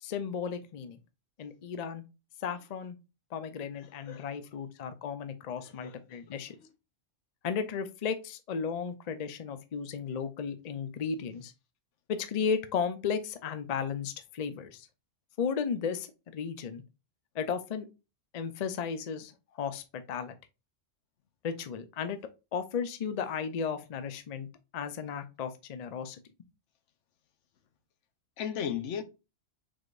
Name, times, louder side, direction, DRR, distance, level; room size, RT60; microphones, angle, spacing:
voice 1, 0.0-1.0 1.4-2.0 2.4-3.0 3.3-6.6 7.4-11.5 12.1-14.9 15.4-16.8 17.3-17.9 18.3-20.3 21.4-22.2 22.5-24.5 24.7-26.2, left 6 dB, 45° left, 0.5 m, -34 dB
voice 2, 3.8-4.4 5.8-6.2 28.4-29.0, left 8 dB, 75° left, 1.0 m, -36 dB
4.9 x 4.0 x 2.4 m
omnidirectional pair, 1.3 m